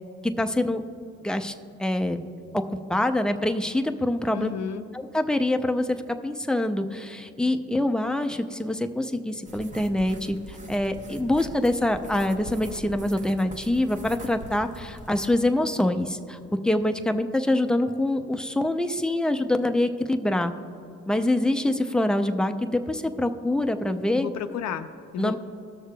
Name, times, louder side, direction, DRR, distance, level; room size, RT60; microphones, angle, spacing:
voice 1, 0.2-0.8 1.2-1.5 1.8-2.2 2.5-4.5 4.9-16.4 16.6-20.5 21.1-24.3 25.2-25.4, left 1 dB, 5° left, 7 dB, 0.4 m, -25 dB
voice 2, 4.3-4.8 24.1-25.4, left 8 dB, 65° left, 8 dB, 0.4 m, -32 dB
sound 1, 9.5-15.3, equal, 25° right, 0.8 m, -43 dB
18.0 x 6.5 x 2.2 m, 2.5 s
cardioid pair, 90°, 30 cm